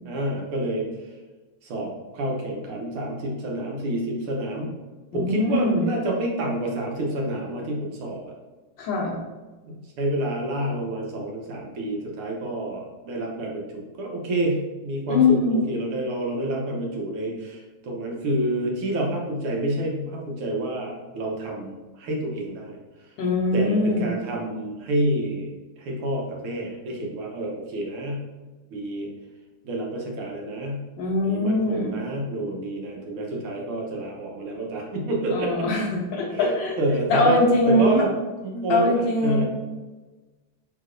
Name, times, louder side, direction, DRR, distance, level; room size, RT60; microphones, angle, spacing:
voice 1, 0.1-0.9 1.6-4.7 5.1-8.2 9.7-22.8 23.5-28.2 28.7-29.1 29.6-30.8 31.2-35.5 36.3-36.5 36.8-37.4 37.7-38.9 39.2-39.4, right 1 dB, 80° right, -1 dB, 1.8 m, -28 dB
voice 2, 5.1-5.9 8.8-9.2 15.1-15.6 23.2-24.1 31.0-32.0 35.3-36.8 37.1-38.0 38.7-39.4, left 2 dB, 70° left, -1 dB, 1.3 m, -22 dB
4.7 x 4.0 x 2.5 m, 1.2 s
omnidirectional pair, 2.4 m